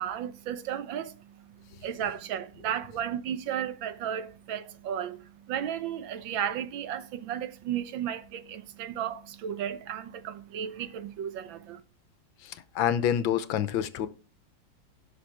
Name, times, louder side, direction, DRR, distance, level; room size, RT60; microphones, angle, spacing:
voice 1, 0.0-11.8, right 9 dB, 80° right, 1.6 m, -34 dB
voice 2, 12.4-14.1, left 9 dB, 85° left, 1.6 m, -27 dB
17.0 x 6.1 x 3.4 m
omnidirectional pair, 2.1 m